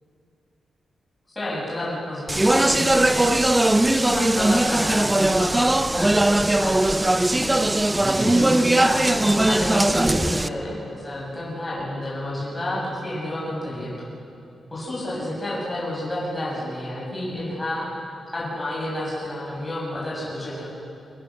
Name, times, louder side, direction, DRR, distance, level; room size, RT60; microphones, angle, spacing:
voice 1, 1.4-3.4 3.7-7.6 8.2-13.9 14.7-17.9 18.3-20.7, left 1 dB, 15° left, -7 dB, 7.3 m, -30 dB
Speech, 2.3-10.5, right 1 dB, 10° right, 0.4 m, -19 dB
25.0 x 19.0 x 6.6 m, 2.7 s
wide cardioid pair, 155°, 0 cm